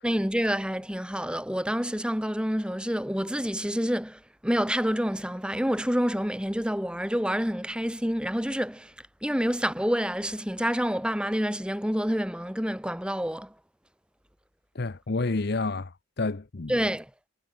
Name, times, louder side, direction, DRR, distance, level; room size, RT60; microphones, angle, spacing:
voice 1, 0.0-8.9 9.2-13.5 16.7-17.1, equal, 5° right, 2.2 m, -28 dB
voice 2, 14.7-16.7, left 3 dB, 50° left, 0.7 m, -30 dB
head